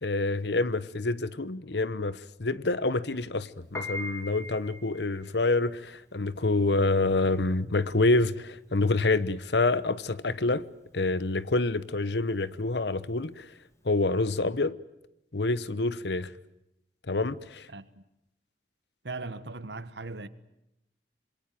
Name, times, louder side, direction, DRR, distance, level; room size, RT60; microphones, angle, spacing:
voice 1, 0.0-10.7 10.9-13.5 13.8-14.8 15.3-16.3 17.1-17.7, left 2 dB, 70° left, 1.1 m, -27 dB
Piano, 3.6-14.0, left 2 dB, 15° left, 2.6 m, -43 dB
voice 2, 17.7-18.0 19.0-20.3, right 3 dB, 75° right, 1.5 m, -39 dB
26.5 x 22.0 x 9.2 m
head